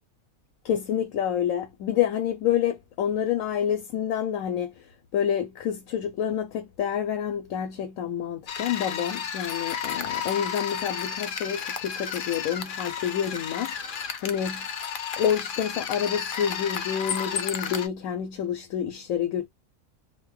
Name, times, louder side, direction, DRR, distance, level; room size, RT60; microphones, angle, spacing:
voice 1, 0.6-14.7 15.2-19.5, left 9 dB, 80° left, 1.0 m, -28 dB
sound 1, 8.5-17.9, left 7 dB, 60° left, 0.5 m, -32 dB
2.7 x 2.2 x 3.1 m
omnidirectional pair, 1.4 m